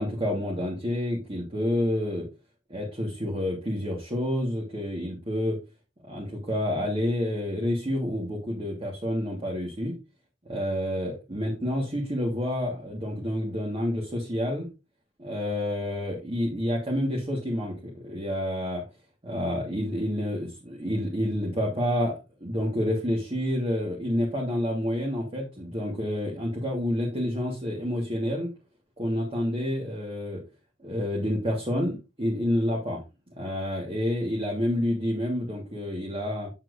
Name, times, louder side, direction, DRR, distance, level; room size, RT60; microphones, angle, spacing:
voice 1, 0.0-2.3 2.7-5.6 6.0-10.0 10.4-14.7 15.2-18.8 19.2-28.5 29.0-30.4 30.8-33.0 33.4-36.5, left 1 dB, 30° right, -2 dB, 1.5 m, -29 dB
8.0 x 7.3 x 2.5 m, 0.27 s
head